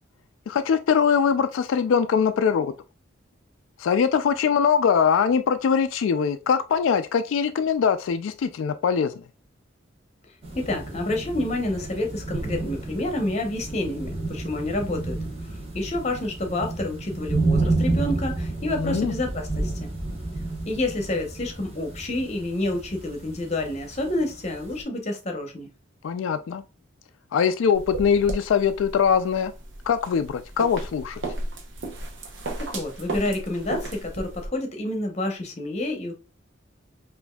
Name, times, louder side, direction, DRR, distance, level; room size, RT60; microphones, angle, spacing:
voice 1, 0.5-2.7 3.8-9.2 18.8-19.1 26.0-26.6 27.3-29.5 29.9-31.2, left 7 dB, 90° left, 0.3 m, -22 dB
sound 1, 10.4-24.8, right 2 dB, 30° right, 1.2 m, -30 dB
voice 2, 10.5-15.2 15.7-19.9 20.7-25.7 32.6-36.1, left 1 dB, 35° left, 0.8 m, -29 dB
sound 2, 27.7-34.5, right 2 dB, 65° right, 0.8 m, -35 dB
5.1 x 2.6 x 2.2 m
head